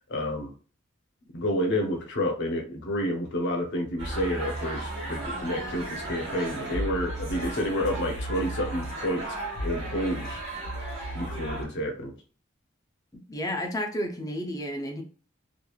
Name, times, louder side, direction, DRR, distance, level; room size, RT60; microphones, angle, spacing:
voice 1, 0.1-0.5 1.3-9.3 9.6-10.4 11.1-12.1, equal, 60° left, 3 dB, 0.7 m, -29 dB
sound 1, 4.0-11.6, right 1 dB, 65° right, 1.3 m, -34 dB
voice 2, 13.1-15.0, equal, 15° left, 4 dB, 0.5 m, -32 dB
2.9 x 2.5 x 2.3 m, 0.40 s
head